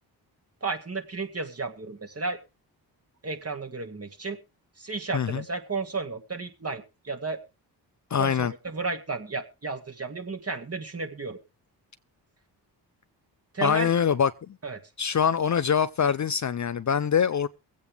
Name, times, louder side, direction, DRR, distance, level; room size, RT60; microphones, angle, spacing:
voice 1, 0.6-2.4 3.2-4.4 4.8-7.4 8.2-11.4 13.5-13.9 14.6-14.8, right 3 dB, 30° right, 2.2 m, -33 dB
voice 2, 8.1-8.5 13.6-14.3 15.0-17.5, left 7 dB, 40° left, 0.6 m, -24 dB
22.5 x 8.4 x 3.4 m
supercardioid pair, 50°, 45 cm